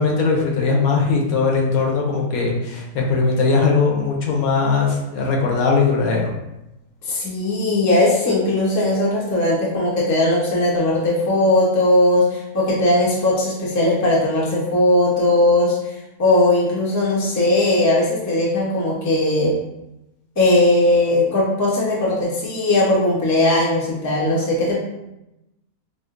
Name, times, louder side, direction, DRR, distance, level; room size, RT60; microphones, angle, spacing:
voice 1, 0.0-6.3, left 4 dB, 75° left, -1 dB, 1.1 m, -19 dB
voice 2, 7.0-19.6 20.4-24.8, left 2 dB, 20° left, -5 dB, 0.4 m, -18 dB
5.0 x 2.0 x 2.5 m, 0.92 s
omnidirectional pair, 1.6 m